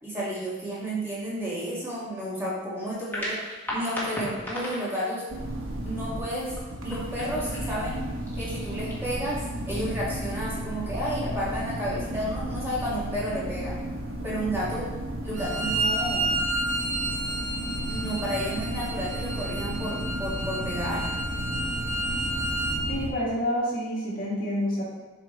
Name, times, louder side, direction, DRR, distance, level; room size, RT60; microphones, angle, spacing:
voice 1, 0.0-3.4 3.7-5.3 5.8-6.5 6.8-8.0 8.4-13.7 14.2-14.9 15.2-16.4 17.9-21.0, equal, 10° right, -8 dB, 2.0 m, -31 dB
sound 1, 2.9-9.8, equal, 10° left, 1.8 m, -38 dB
sound 2, 5.3-23.1, right 1 dB, 80° right, 1.2 m, -33 dB
Bowed string instrument, 15.3-22.8, right 2 dB, 35° right, 0.8 m, -31 dB
voice 2, 22.9-24.8, equal, 45° left, -6 dB, 2.0 m, -28 dB
8.1 x 6.0 x 3.2 m, 1.3 s
head